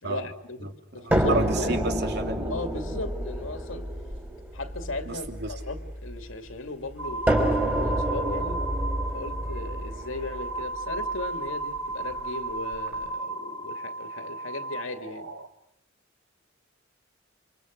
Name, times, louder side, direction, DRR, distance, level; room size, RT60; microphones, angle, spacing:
voice 1, 0.0-1.9 2.5-4.0 4.5-8.8 9.1-15.3, left 2 dB, 75° left, 2.6 m, -37 dB
voice 2, 1.0-2.5 5.0-5.5, right 2 dB, 55° right, 2.9 m, -31 dB
sound 1, 1.1-6.3 7.3-11.2 12.2-12.3 12.7-12.8, right 1 dB, 10° right, 4.2 m, -28 dB
sound 2, 7.0-15.5, right 2 dB, 75° right, 1.7 m, -34 dB
29.5 x 26.5 x 6.6 m
head